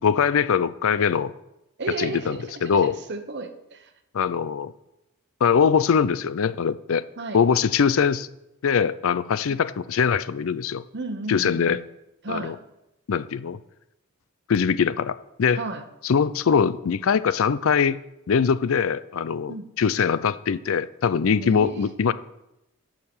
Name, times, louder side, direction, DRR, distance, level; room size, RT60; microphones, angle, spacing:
voice 1, 0.0-1.3 2.0-2.4 2.6-3.0 4.1-4.7 5.4-7.0 7.3-8.3 8.6-10.8 11.3-11.8 12.3-12.6 13.1-13.6 14.5-15.6 16.0-18.0 18.3-22.1, left 6 dB, 65° left, 16 dB, 0.4 m, -22 dB
voice 2, 1.8-3.9 7.2-7.4 10.9-11.8 12.2-12.6 15.5-15.8 19.5-19.6 21.4-21.9, right 3 dB, 50° right, 8 dB, 1.0 m, -33 dB
11.5 x 4.7 x 7.1 m, 0.89 s
head